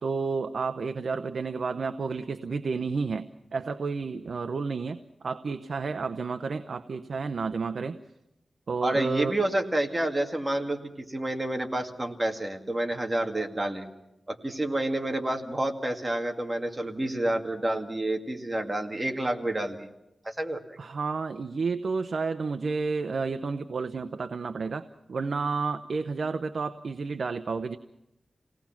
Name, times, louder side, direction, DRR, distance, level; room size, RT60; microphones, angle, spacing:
voice 1, 0.0-8.0 8.7-9.3 20.8-27.8, right 4 dB, 75° right, 9 dB, 0.7 m, -31 dB
voice 2, 8.8-10.8 11.1-13.9 14.3-19.9 20.2-20.8, right 1 dB, 20° right, 3 dB, 2.2 m, -29 dB
27.5 x 18.0 x 5.9 m, 0.88 s
wide cardioid pair, 100°, 0 cm